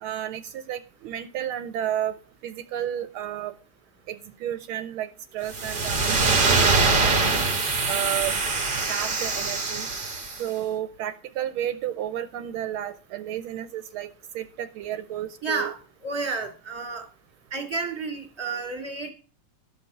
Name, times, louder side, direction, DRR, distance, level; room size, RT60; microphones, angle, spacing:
voice 1, 0.0-3.6 4.1-7.5 7.9-8.4 8.9-9.9 10.4-14.1 14.3-15.7, right 11 dB, 80° right, 10 dB, 1.5 m, -32 dB
sound 1, 5.5-10.4, right 3 dB, 30° right, 1.0 m, -23 dB
voice 2, 15.4-17.1 17.5-19.1, right 4 dB, 15° right, 2 dB, 2.1 m, -31 dB
12.0 x 5.8 x 5.5 m, 0.39 s
omnidirectional pair, 2.4 m